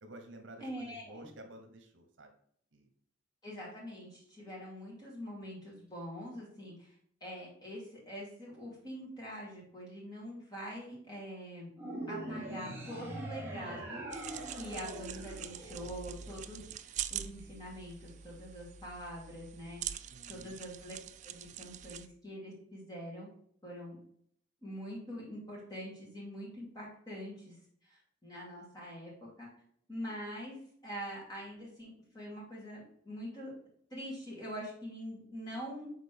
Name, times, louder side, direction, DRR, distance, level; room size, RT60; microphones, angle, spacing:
voice 1, 0.0-2.3 2.7-2.9 13.3-13.7 14.3-14.8 20.1-20.6, right 1 dB, 70° right, 5 dB, 0.9 m, -52 dB
voice 2, 0.6-1.3 3.4-6.9 7.2-11.7 12.1-14.0 14.6-19.9 20.3-20.9 21.2-23.3 23.6-24.0 24.6-27.5 27.8-29.5 29.9-33.5 33.9-35.9, equal, 20° left, -5 dB, 2.7 m, -44 dB
sound 1, 11.8-16.3, right 1 dB, 10° right, 1.4 m, -42 dB
sound 2, 14.1-22.1, right 10 dB, 40° right, 0.3 m, -44 dB
6.5 x 4.1 x 3.5 m, 0.65 s
head